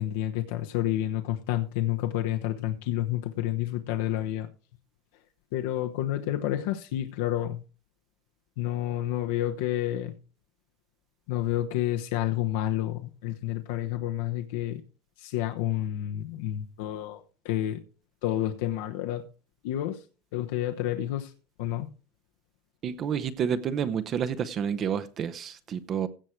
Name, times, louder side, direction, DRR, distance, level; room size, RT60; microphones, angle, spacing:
voice 1, 0.0-4.5 5.5-7.6 8.6-10.1 11.3-14.8 15.2-17.8 18.2-19.2 19.6-20.0 20.3-21.3 21.6-21.9, left 13 dB, 70° left, 1.0 m, -29 dB
voice 2, 22.8-26.1, right 8 dB, 25° right, 0.7 m, -29 dB
16.5 x 6.4 x 4.5 m
cardioid pair, 175°, 0 cm